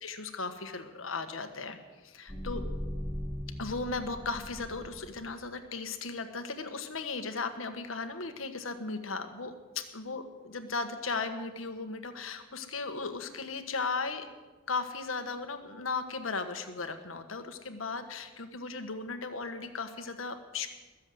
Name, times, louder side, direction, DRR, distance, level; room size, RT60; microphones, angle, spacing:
voice 1, 0.0-1.8 2.0-2.6 3.6-14.3 14.7-20.7, left 4 dB, 85° left, 8 dB, 1.5 m, -36 dB
sound 1, 2.3-5.4, equal, 15° left, 2.0 m, -39 dB
21.5 x 7.5 x 7.9 m, 1.2 s
head